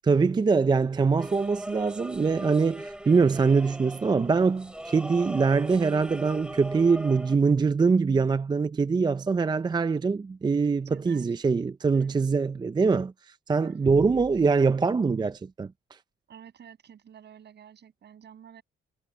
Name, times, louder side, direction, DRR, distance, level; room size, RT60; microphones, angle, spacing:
voice 1, 0.0-16.0, right 4 dB, 20° right, 0.5 m, -23 dB
sound 1, 1.2-7.4, right 1 dB, 5° right, 2.4 m, -39 dB
voice 2, 10.9-11.4 11.9-12.2 13.6-14.0 16.3-18.6, right 9 dB, 60° right, 6.8 m, -50 dB
cardioid pair, 90°, 20 cm